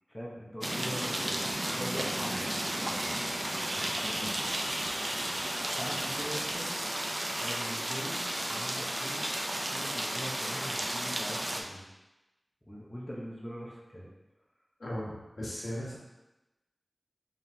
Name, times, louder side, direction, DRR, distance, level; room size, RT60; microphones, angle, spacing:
voice 1, 0.1-1.4 1.7-3.2 3.7-4.3 5.7-6.7 7.4-11.9 12.7-14.1, equal, 15° left, -5 dB, 0.9 m, -42 dB
sound 1, 0.6-11.6, right 1 dB, 30° right, 0.5 m, -33 dB
Bird, 1.5-6.6, right 1 dB, 85° right, 0.5 m, -42 dB
voice 2, 14.8-16.0, equal, 80° left, -6 dB, 1.3 m, -37 dB
4.7 x 3.6 x 2.8 m, 1.0 s
wide cardioid pair, 75°, 0 cm